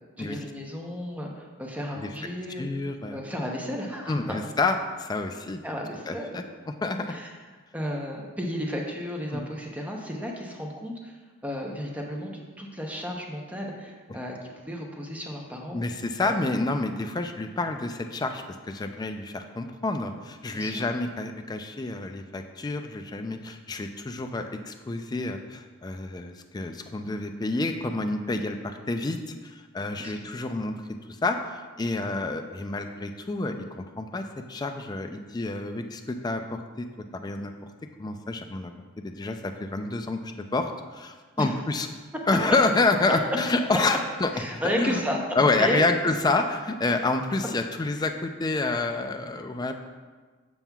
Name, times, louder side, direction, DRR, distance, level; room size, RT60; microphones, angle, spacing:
voice 1, 0.2-2.7 3.1-4.1 5.6-6.4 7.1-7.3 7.7-11.1 11.4-15.8 16.2-16.5 20.5-20.8 30.0-30.1 41.4-41.5 44.3-45.2 45.6-45.8, equal, 5° right, 0 dB, 0.7 m, -33 dB
voice 2, 2.6-3.2 4.1-5.6 6.1-7.1 9.3-9.4 15.7-30.8 31.2-36.9 37.2-37.5 38.0-40.2 40.5-41.9 42.3-44.3 44.8-45.0 45.4-49.7, left 3 dB, 20° left, 6 dB, 0.3 m, -28 dB
7.3 x 6.9 x 2.3 m, 1.4 s
head